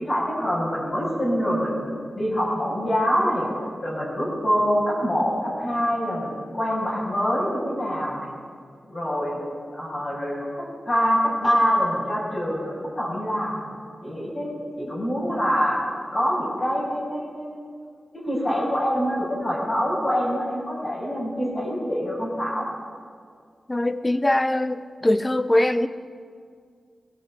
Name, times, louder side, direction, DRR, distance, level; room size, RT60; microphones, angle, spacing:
voice 1, 0.0-3.5 3.8-8.3 8.8-9.4 9.7-13.7 14.0-14.5 14.8-15.8 16.1-17.6 18.1-22.7, equal, 40° left, -7 dB, 7.1 m, -25 dB
voice 2, 23.7-25.9, left 1 dB, 20° left, 12 dB, 0.9 m, -22 dB
21.0 x 16.5 x 7.8 m, 2.1 s
wide cardioid pair, 80°, 0 cm